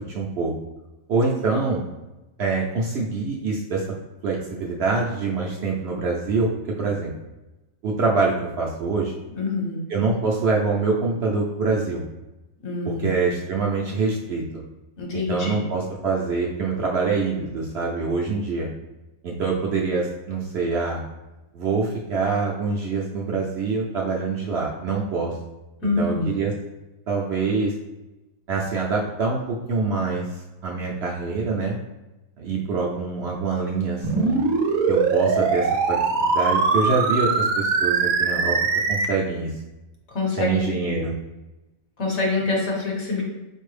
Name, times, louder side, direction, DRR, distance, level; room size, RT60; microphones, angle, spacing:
voice 1, 0.1-0.5 1.1-1.8 2.4-3.9 4.2-6.5 6.8-7.1 7.8-9.1 9.9-12.0 12.8-14.4 15.1-18.7 19.2-21.0 21.5-25.4 25.8-26.5 27.1-27.7 28.5-30.3 30.6-31.8 32.4-34.4 34.9-38.6 38.9-39.5 40.3-41.1, right 4 dB, 65° right, -2 dB, 0.7 m, -25 dB
voice 2, 9.3-9.8 12.6-13.1 15.0-15.6 25.8-26.3 40.1-41.1 42.0-43.2, left 3 dB, 60° left, 0 dB, 1.1 m, -26 dB
sound 1, 34.0-39.1, right 4 dB, 90° right, 1.0 m, -21 dB
4.4 x 2.6 x 3.2 m, 1.0 s
omnidirectional pair, 1.4 m